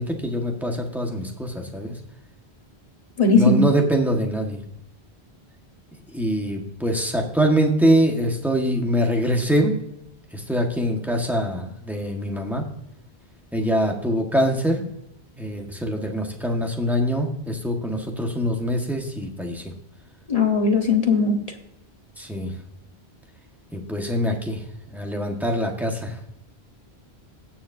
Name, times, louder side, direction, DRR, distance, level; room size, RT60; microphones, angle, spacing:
voice 1, 0.0-2.0 3.4-4.6 6.1-9.7 10.3-12.6 13.5-14.9 15.4-19.6 22.2-22.5 23.7-24.6 24.9-26.1, equal, ahead, 1 dB, 1.5 m, -24 dB
voice 2, 3.2-3.6 20.3-21.4, left 4 dB, 35° left, 2 dB, 1.5 m, -18 dB
21.0 x 7.1 x 2.7 m, 0.79 s
omnidirectional pair, 1.1 m